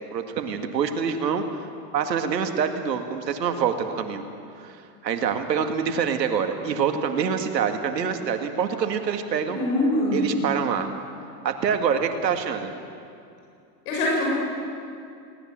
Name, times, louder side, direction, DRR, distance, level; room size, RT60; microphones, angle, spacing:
voice 1, 0.1-1.4 1.9-4.2 4.6-4.8 5.0-9.6 10.1-10.9 11.4-12.7, right 7 dB, 85° right, 6 dB, 2.1 m, -25 dB
voice 2, 9.5-10.3 13.8-14.3, left 1 dB, 65° left, -4 dB, 6.8 m, -23 dB
20.0 x 18.0 x 7.5 m, 2.5 s
hypercardioid pair, 105°, 48 cm